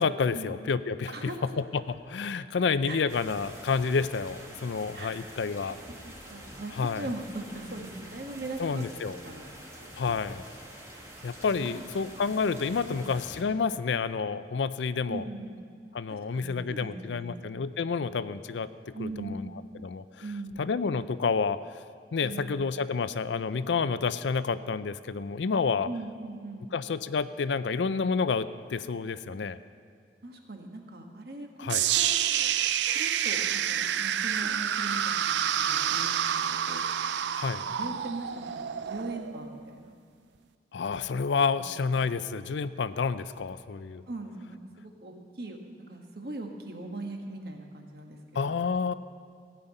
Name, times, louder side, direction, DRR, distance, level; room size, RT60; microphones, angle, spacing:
voice 1, 0.0-1.3 1.7-5.8 6.8-7.1 8.6-9.2 10.0-10.4 11.2-15.2 15.9-19.5 19.7-20.0 20.6-21.6 22.1-25.9 26.7-29.6 31.6-31.9 37.3-37.6 40.7-44.0 48.3-48.9, left 5 dB, 75° left, 14 dB, 0.4 m, -29 dB
voice 2, 1.1-1.4 2.8-3.0 4.9-5.2 6.0-9.5 9.8-9.9 11.6-11.8 12.9-13.1 15.1-15.6 16.1-17.4 18.9-19.5 20.2-20.7 22.2-22.6 25.8-26.7 30.2-32.2 32.9-36.8 37.4-39.9 41.8-41.9 43.0-43.1 44.1-48.6, right 2 dB, 55° right, 2 dB, 1.4 m, -40 dB
sound 1, 3.1-13.4, right 1 dB, 15° right, 1.4 m, -46 dB
sound 2, 31.7-39.8, right 9 dB, 75° right, 0.4 m, -28 dB
16.0 x 5.7 x 8.9 m, 2.2 s
head